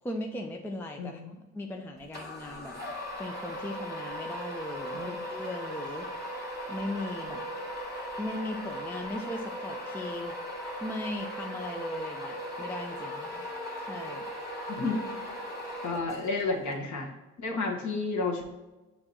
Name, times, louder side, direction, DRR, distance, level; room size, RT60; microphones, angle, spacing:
voice 1, 0.0-6.1 6.7-7.4 8.2-10.6 10.8-14.2, left 1 dB, 5° left, 3 dB, 0.5 m, -38 dB
voice 2, 1.0-1.4 5.0-5.2 14.7-15.0 15.8-18.5, left 3 dB, 45° left, 1 dB, 1.4 m, -31 dB
sound 1, 2.1-16.4, equal, 25° left, 1.8 m, -38 dB
7.5 x 2.9 x 4.3 m, 1.1 s
figure-of-eight pair, 55°, 42 cm